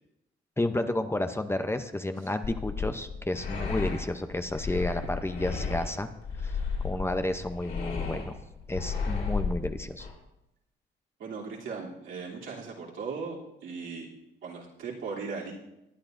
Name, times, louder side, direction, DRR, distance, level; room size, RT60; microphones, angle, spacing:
voice 1, 0.6-6.1 6.4-6.5 6.8-8.4 8.7-10.1, left 1 dB, 10° left, 8 dB, 0.6 m, -31 dB
sound 1, 2.4-10.1, left 5 dB, 65° left, 3.6 m, -33 dB
voice 2, 11.2-14.1 14.4-15.5, right 5 dB, 80° right, -5 dB, 3.0 m, -38 dB
19.5 x 9.7 x 2.6 m, 0.89 s
cardioid pair, 90°, 20 cm